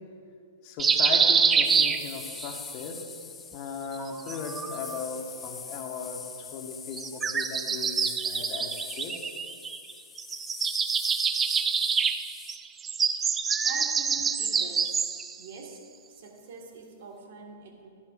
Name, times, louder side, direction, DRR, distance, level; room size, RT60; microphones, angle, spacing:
voice 1, 0.6-3.0 3.5-8.7 9.0-9.3, left 5 dB, 40° left, 2 dB, 1.4 m, -37 dB
sound 1, 0.8-2.5 3.9-5.0 6.9-9.9 10.2-15.4, right 6 dB, 15° right, 0.4 m, -26 dB
sound 2, 1.6-12.6, left 6 dB, 15° left, 0.7 m, -43 dB
voice 2, 13.6-15.1 15.4-15.8 16.1-17.9, right 4 dB, 60° right, 1 dB, 1.8 m, -44 dB
11.5 x 10.5 x 2.6 m, 2.2 s
hypercardioid pair, 115°, 0 cm